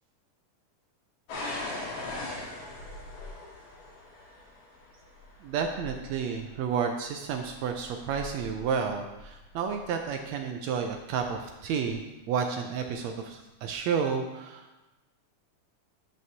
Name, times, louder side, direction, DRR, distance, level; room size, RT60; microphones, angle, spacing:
sound 1, 1.3-10.1 10.8-11.3 11.8-12.0, left 2 dB, 60° left, 2.4 m, -41 dB
voice 1, 5.4-14.8, right 6 dB, 80° right, 4 dB, 1.6 m, -31 dB
10.5 x 7.3 x 2.8 m, 1.0 s
omnidirectional pair, 3.6 m